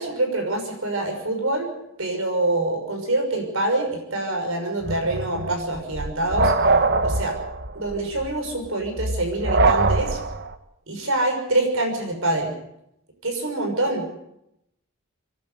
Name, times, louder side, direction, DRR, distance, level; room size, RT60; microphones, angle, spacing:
voice 1, 0.0-1.7 2.0-6.5 7.0-7.3 7.7-10.2 10.9-12.5 13.2-14.2, right 2 dB, 65° right, 4 dB, 6.2 m, -25 dB
sound 1, 4.8-10.5, right 3 dB, 50° right, 1.2 m, -23 dB
27.5 x 11.5 x 8.2 m, 0.80 s
head